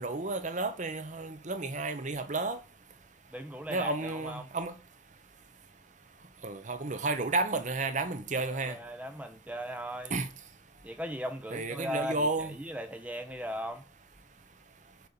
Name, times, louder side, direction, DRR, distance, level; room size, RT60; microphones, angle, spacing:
voice 1, 0.0-2.6 3.7-4.7 6.4-8.8 10.1-10.3 11.5-12.5, right 3 dB, 40° right, 0.9 m, -32 dB
voice 2, 3.3-4.5 8.5-10.2 10.8-13.8, equal, 5° right, 0.6 m, -38 dB
7.6 x 4.3 x 6.9 m
head